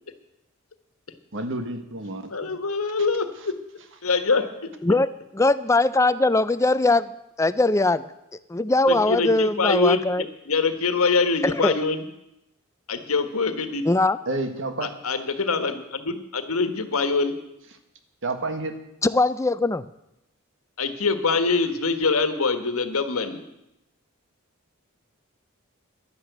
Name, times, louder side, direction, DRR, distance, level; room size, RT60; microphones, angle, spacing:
voice 1, 1.3-2.6 14.3-14.9 18.2-18.7, right 2 dB, 60° right, 7 dB, 1.6 m, -30 dB
voice 2, 2.3-3.6 4.0-4.7 8.9-12.0 12.9-13.8 14.8-17.3 20.8-23.4, left 4 dB, 85° left, 9 dB, 1.4 m, -24 dB
voice 3, 4.8-7.1 7.4-8.0 8.5-10.2 11.4-11.7 13.9-14.2 19.0-19.8, left 2 dB, 15° left, 15 dB, 0.4 m, -21 dB
11.5 x 11.0 x 8.0 m, 0.86 s
head